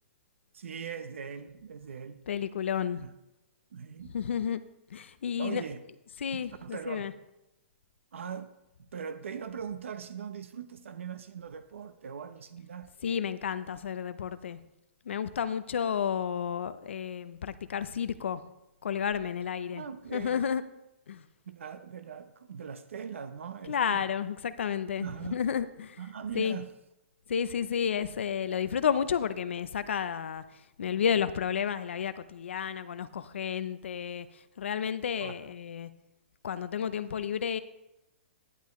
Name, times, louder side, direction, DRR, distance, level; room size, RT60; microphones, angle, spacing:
voice 1, 0.5-2.2 3.0-3.1 3.7-4.1 5.4-5.8 6.3-7.1 8.1-8.5 8.8-12.9 19.7-20.4 21.4-24.1 25.0-25.4 26.0-26.7 35.2-35.4, right 7 dB, 80° right, 9 dB, 0.8 m, -40 dB
voice 2, 2.3-3.0 4.1-4.6 4.9-5.6 6.2-7.1 13.0-14.6 15.1-18.4 18.8-19.8 20.1-20.6 21.1-21.2 23.7-26.0 26.3-26.6 27.3-30.4 30.8-35.9 36.4-37.6, left 7 dB, 70° left, 13 dB, 0.7 m, -31 dB
11.5 x 11.0 x 3.1 m, 0.91 s
hypercardioid pair, 175°, 7 cm